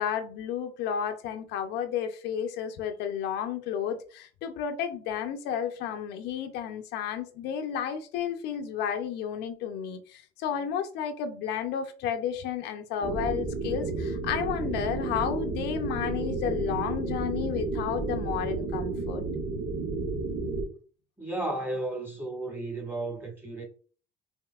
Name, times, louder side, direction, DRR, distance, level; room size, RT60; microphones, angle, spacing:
voice 1, 0.0-19.2, left 8 dB, 90° left, 0.7 m, -32 dB
sound 1, 13.0-20.6, right 3 dB, 80° right, 1.6 m, -32 dB
voice 2, 21.2-23.7, right 2 dB, 10° right, 1.6 m, -33 dB
5.3 x 2.8 x 2.4 m
cardioid pair, 110°, 17 cm